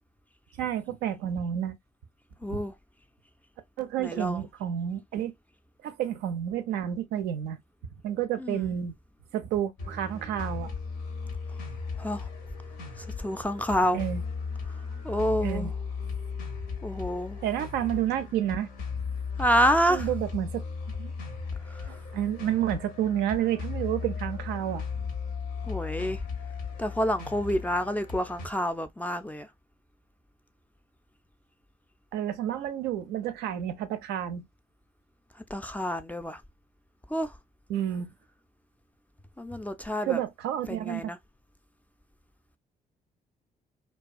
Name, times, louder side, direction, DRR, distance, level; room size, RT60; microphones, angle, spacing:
voice 1, 0.6-1.8 2.5-2.6 3.8-5.3 5.8-7.6 8.0-8.9 9.3-10.7 13.9-14.2 15.4-15.7 17.4-18.7 19.9-20.6 21.0-21.1 21.9-24.8 32.1-34.4 37.7-38.1 40.0-41.1, right 10 dB, 70° right, 0.4 m, -30 dB
voice 2, 2.4-2.7 4.0-4.4 8.4-8.7 12.0-12.3 13.0-14.0 15.0-15.7 16.8-17.4 19.4-20.1 21.7-21.9 25.6-26.2 26.8-29.5 35.5-36.4 37.1-37.3 39.4-40.2 40.7-41.2, equal, 10° left, 0.4 m, -28 dB
sound 1, 9.8-28.5, left 5 dB, 75° left, 0.7 m, -36 dB
2.3 x 2.2 x 2.3 m
hypercardioid pair, 45°, 18 cm